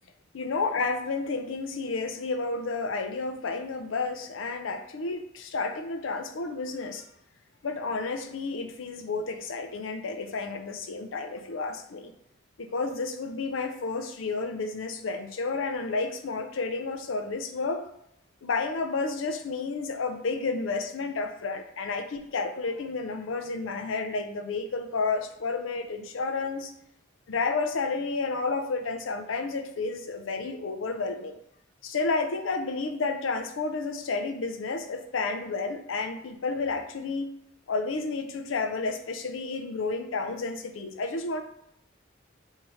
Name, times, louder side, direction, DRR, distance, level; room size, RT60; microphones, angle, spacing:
voice 1, 0.3-7.0 7.6-12.1 12.6-17.9 18.4-26.7 27.3-31.4 31.8-37.3 37.7-41.4, left 3 dB, 80° left, 7 dB, 0.5 m, -31 dB
4.9 x 2.7 x 3.1 m, 0.77 s
head